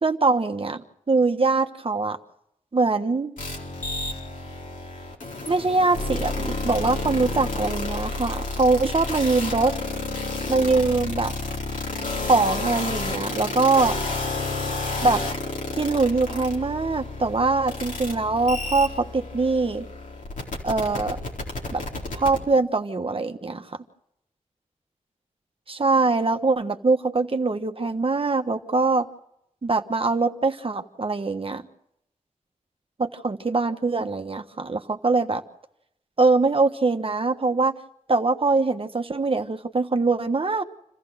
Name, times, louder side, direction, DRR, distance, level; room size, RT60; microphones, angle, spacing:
voice 1, 0.0-2.2 2.7-3.3 5.4-9.7 10.5-11.3 12.2-13.9 15.0-15.2 15.7-19.9 20.6-21.2 21.7-21.8 22.1-23.8 25.7-29.1 29.6-31.6 33.0-35.4 36.2-37.7 38.1-40.6, right 3 dB, 45° right, 6 dB, 1.4 m, -23 dB
sound 1, 3.4-22.4, left 2 dB, 85° left, 4.2 m, -31 dB
27.5 x 15.0 x 6.5 m, 0.81 s
wide cardioid pair, 70°, 13 cm